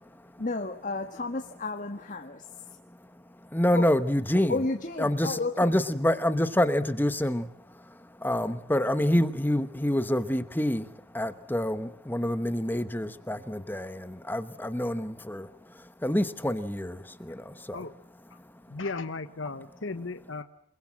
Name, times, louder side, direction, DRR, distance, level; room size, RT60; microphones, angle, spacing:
voice 1, 0.4-2.8 3.7-3.9 4.5-5.7, left 3 dB, 40° left, 4 dB, 1.6 m, -32 dB
voice 2, 3.5-4.5 5.0-7.5 8.2-10.9 11.1-15.5 16.0-17.8, left 1 dB, 10° left, 11 dB, 1.0 m, -27 dB
voice 3, 18.7-20.4, left 3 dB, 65° left, 9 dB, 1.2 m, -35 dB
29.0 x 21.0 x 7.5 m, 0.73 s
head